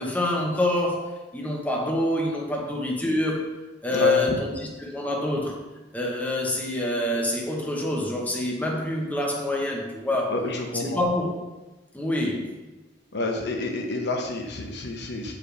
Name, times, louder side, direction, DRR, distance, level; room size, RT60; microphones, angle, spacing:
voice 1, 0.0-3.5 3.8-4.5 4.8-5.6 5.9-10.3 10.9-11.3 11.9-12.5, left 1 dB, 10° left, -2 dB, 0.9 m, -26 dB
voice 2, 3.9-4.4 10.3-11.0 13.1-15.3, left 2 dB, 65° left, 3 dB, 0.7 m, -29 dB
6.5 x 4.9 x 3.3 m, 1.1 s
head